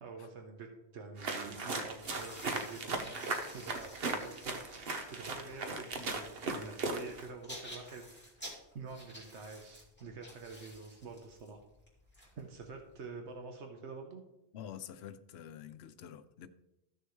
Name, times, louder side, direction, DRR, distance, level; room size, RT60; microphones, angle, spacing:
voice 1, 0.0-8.1 8.3-11.6 12.4-14.2, right 4 dB, 85° right, 3 dB, 1.3 m, -47 dB
sound 1, 1.2-7.3, right 3 dB, 60° right, 1.1 m, -38 dB
sound 2, 2.0-12.9, equal, 10° left, 2.7 m, -52 dB
voice 2, 14.5-16.5, left 9 dB, 70° left, 10 dB, 0.8 m, -47 dB
14.0 x 6.6 x 3.1 m, 0.93 s
omnidirectional pair, 1.1 m